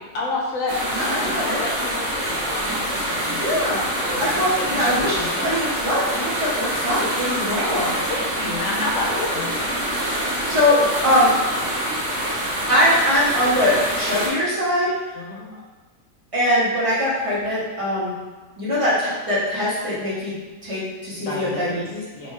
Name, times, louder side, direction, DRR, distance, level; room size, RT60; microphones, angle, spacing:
voice 1, 0.1-3.6 3.9-5.8 8.1-9.5 15.1-15.5 21.3-21.8 22.1-22.3, left 2 dB, 65° left, -3 dB, 0.9 m, -30 dB
sound 1, 0.7-14.3, equal, 75° right, 1.4 m, -25 dB
voice 2, 1.0-1.6 3.4-3.8 4.2-5.1 5.4-7.9 9.5-9.6 10.4-11.4 12.7-15.1 16.3-18.1 18.6-20.3 20.6-22.0, left 1 dB, 30° right, -8 dB, 0.6 m, -22 dB
4.2 x 2.2 x 3.0 m, 1.3 s
omnidirectional pair, 1.7 m